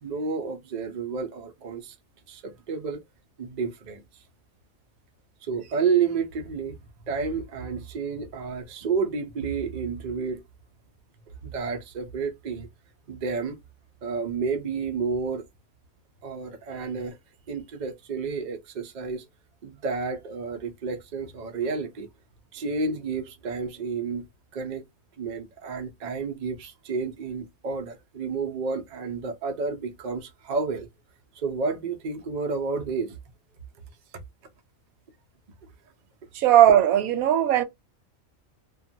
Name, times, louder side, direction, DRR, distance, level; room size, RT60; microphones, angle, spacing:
voice 1, 0.0-1.9 2.3-3.0 3.4-4.0 5.4-6.8 7.1-10.4 11.4-12.7 13.1-13.6 14.0-15.5 16.2-17.2 17.5-19.3 19.6-22.1 22.5-24.3 24.5-24.8 25.2-30.9 31.3-33.2, right 5 dB, 50° right, 0.5 m, -30 dB
voice 2, 36.3-37.6, right 11 dB, 90° right, 1.0 m, -18 dB
2.3 x 2.2 x 2.6 m
omnidirectional pair, 1.5 m